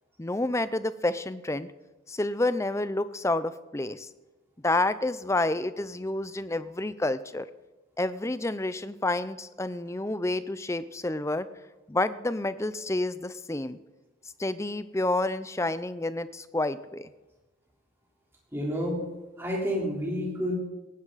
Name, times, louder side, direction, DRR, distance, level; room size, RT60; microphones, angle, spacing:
voice 1, 0.2-1.7 2.1-4.1 4.6-7.5 8.0-11.5 11.9-13.8 14.4-17.1, left 2 dB, 15° left, 14 dB, 0.5 m, -29 dB
voice 2, 18.5-19.1 19.4-20.5, equal, 10° right, -3 dB, 3.9 m, -29 dB
18.0 x 16.0 x 4.1 m, 1.1 s
head